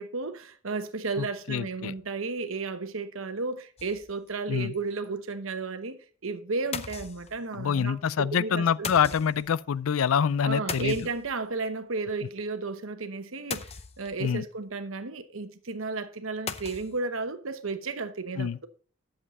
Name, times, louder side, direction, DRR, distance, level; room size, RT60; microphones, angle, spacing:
voice 1, 0.0-9.0 10.4-18.7, right 3 dB, 80° right, 1.0 m, -33 dB
voice 2, 1.2-1.9 4.5-4.7 7.5-11.0 14.2-14.4 18.4-18.6, left 7 dB, 85° left, 0.4 m, -26 dB
sound 1, 3.8-4.3 4.7-4.8 5.0-5.1 6.7-7.6 8.8-9.5 10.7-11.6 13.5-14.3 16.5-17.0, left 6 dB, 30° left, 0.6 m, -38 dB
11.0 x 7.4 x 4.2 m
head